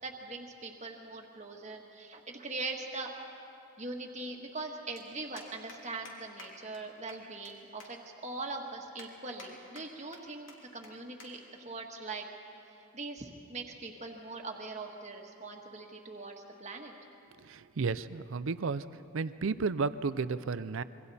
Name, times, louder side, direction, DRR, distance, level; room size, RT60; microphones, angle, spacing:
voice 1, 0.0-3.1 3.8-12.2 12.9-16.9, right 3 dB, 35° right, 1 dB, 1.6 m, -41 dB
sound 1, 5.0-5.1 5.4-5.8 6.1-6.2 6.4-6.5 6.7-6.8 7.1-7.5 7.8-7.9 8.4-8.5 9.0-9.5 9.8-10.2 10.5-10.6 10.8-10.9 11.2-11.3 11.6-11.8 12.6-12.9, left 4 dB, 65° left, 3.3 m, -51 dB
voice 2, 17.4-18.9 19.1-20.8, right 4 dB, 70° right, 15 dB, 0.5 m, -33 dB
26.5 x 23.5 x 4.2 m, 2.8 s
head